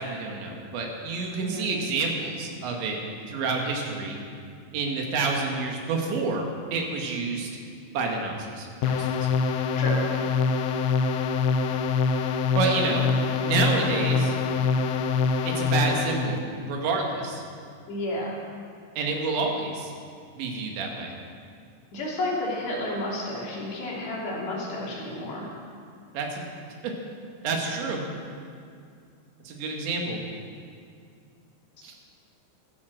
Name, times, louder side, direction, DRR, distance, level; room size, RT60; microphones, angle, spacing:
voice 1, 0.0-3.0 3.3-4.2 4.7-6.5 6.7-7.5 7.9-9.2 12.6-13.1 13.4-14.3 15.5-17.4 19.0-19.9 20.4-21.1 26.1-26.4 27.4-28.0 29.5-30.2 31.8-31.9, right 3 dB, 75° right, 1 dB, 4.1 m, -28 dB
sound 1, 8.8-16.4, left 4 dB, 80° left, 2.2 m, -25 dB
voice 2, 17.9-18.4 21.9-25.5 27.7-27.8, left 1 dB, 65° left, -5 dB, 5.4 m, -31 dB
16.0 x 12.5 x 6.5 m, 2.3 s
omnidirectional pair, 5.3 m